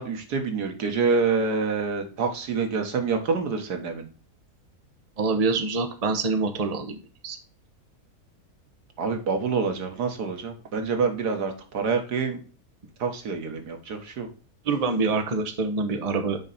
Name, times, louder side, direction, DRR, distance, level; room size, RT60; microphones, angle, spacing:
voice 1, 0.0-4.1 9.0-12.4 13.0-14.3, right 5 dB, 90° right, 5 dB, 1.9 m, -27 dB
voice 2, 5.2-7.0 7.2-7.4 14.6-16.4, right 4 dB, 30° right, 6 dB, 0.9 m, -25 dB
6.3 x 5.1 x 4.1 m, 0.37 s
omnidirectional pair, 1.7 m